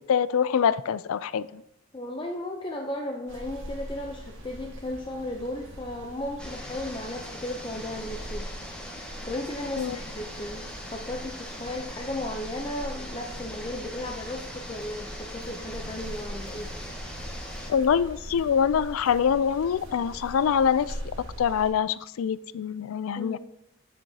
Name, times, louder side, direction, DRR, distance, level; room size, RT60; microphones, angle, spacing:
voice 1, 0.1-1.6 9.8-10.0 17.7-21.0 21.4-23.4, left 7 dB, 75° left, 17 dB, 0.3 m, -24 dB
voice 2, 1.9-8.5 9.2-16.7 23.2-23.4, left 1 dB, 20° left, 1 dB, 0.5 m, -35 dB
sound 1, 3.3-21.7, equal, 60° right, 1.4 m, -42 dB
sound 2, 6.4-17.7, equal, 5° left, 1.0 m, -41 dB
9.0 x 7.6 x 2.8 m, 0.80 s
head